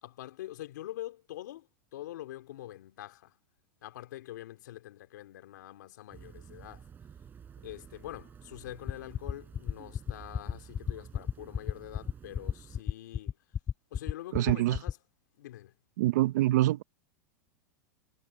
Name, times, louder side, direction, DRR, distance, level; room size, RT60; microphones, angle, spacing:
voice 1, 0.0-3.3 3.8-6.9 7.6-13.4 13.9-15.0 15.4-15.7, left 14 dB, 80° left, 2.9 m, -45 dB
sound 1, 6.1-12.8, right 7 dB, 20° right, 6.6 m, -51 dB
sound 2, 8.9-14.9, left 8 dB, 20° left, 1.7 m, -31 dB
voice 2, 14.3-14.8 16.0-16.8, right 15 dB, 70° right, 0.7 m, -25 dB
supercardioid pair, 150°, 10 cm